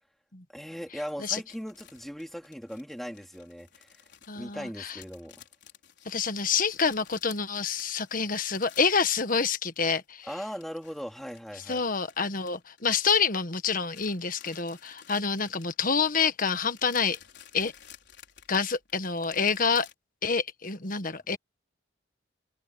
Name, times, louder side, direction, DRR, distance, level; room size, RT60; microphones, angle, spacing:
voice 1, 0.5-4.0 4.3-5.4 10.2-11.8 21.3-21.4, equal, ahead, 3.8 m, -39 dB
sound 1, 1.1-9.8 10.0-13.4 13.6-19.9, left 10 dB, 60° left, 5.1 m, -54 dB
voice 2, 4.3-5.0 6.0-10.3 11.7-17.2 17.5-17.7 18.5-19.9 20.2-21.4, left 5 dB, 45° left, 1.4 m, -27 dB
head